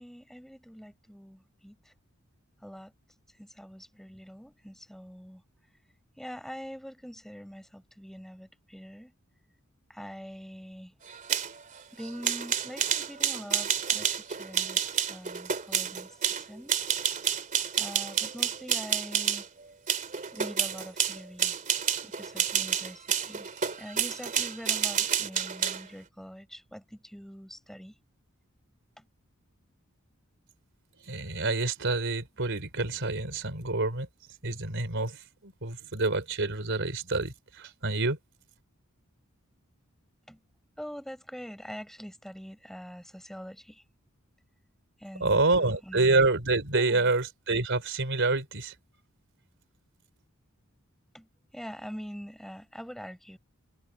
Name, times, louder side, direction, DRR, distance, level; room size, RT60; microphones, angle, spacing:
voice 1, 0.0-1.9 2.6-2.9 3.4-5.4 6.2-9.1 9.9-10.9 11.9-16.1 16.4-16.8 17.8-19.5 20.3-21.6 22.0-23.5 23.8-27.9 29.0-29.1 40.3-40.4 40.8-43.8 45.0-46.1 46.8-47.1 51.1-53.4, equal, ahead, 5.5 m, -44 dB
sound 1, 11.1-19.5 19.9-25.9, right 8 dB, 40° right, 2.8 m, -29 dB
voice 2, 31.0-34.1 34.4-38.2 45.2-48.7, right 3 dB, 60° right, 4.1 m, -27 dB
head